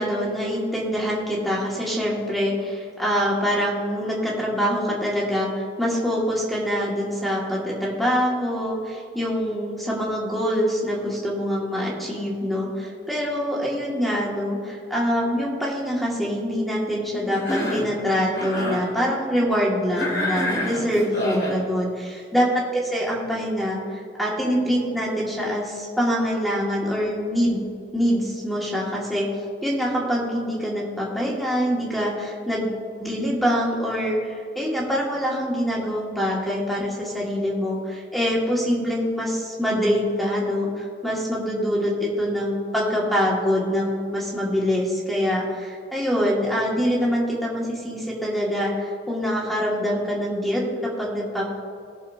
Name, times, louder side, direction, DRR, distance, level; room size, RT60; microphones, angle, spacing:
voice 1, 0.0-22.5 22.7-27.6 27.9-29.3 29.6-32.7 33.0-51.5, equal, ahead, -5 dB, 2.0 m, -25 dB
Cough, 17.3-17.9 18.3-18.9 20.0-21.6, left 1 dB, 75° left, 2.9 m, -27 dB
20.0 x 6.9 x 2.8 m, 2.3 s
head